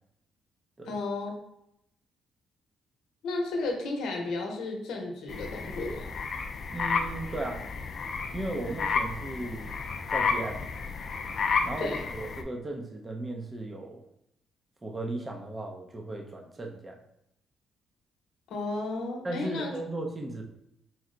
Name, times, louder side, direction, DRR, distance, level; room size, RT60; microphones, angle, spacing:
voice 1, 0.9-1.3 3.2-6.1 11.8-12.0 18.5-19.7, left 2 dB, 80° left, 1 dB, 0.7 m, -33 dB
sound 1, 5.3-12.4, left 5 dB, 55° left, 0.4 m, -32 dB
voice 2, 6.7-7.7 8.3-9.7 10.1-10.6 11.6-14.0 14.8-17.0 19.2-20.4, right 2 dB, 25° right, 1 dB, 0.6 m, -36 dB
4.4 x 2.1 x 3.7 m, 0.77 s
cardioid pair, 90°, 0 cm